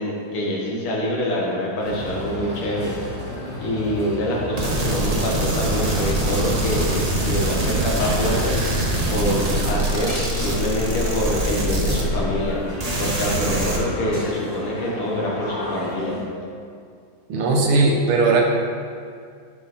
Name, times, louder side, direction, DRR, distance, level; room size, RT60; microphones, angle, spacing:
voice 1, 0.0-2.9 3.6-8.6 9.1-12.6 13.0-16.2, equal, 85° left, -3 dB, 2.5 m, -25 dB
sound 1, 1.8-16.2, left 1 dB, 30° left, 2.1 m, -34 dB
sound 2, 4.6-12.5 12.8-13.8, right 1 dB, 55° right, 0.4 m, -23 dB
voice 2, 17.3-18.4, right 3 dB, 80° right, 0 dB, 2.0 m, -18 dB
11.5 x 5.0 x 4.1 m, 2.2 s
omnidirectional pair, 2.3 m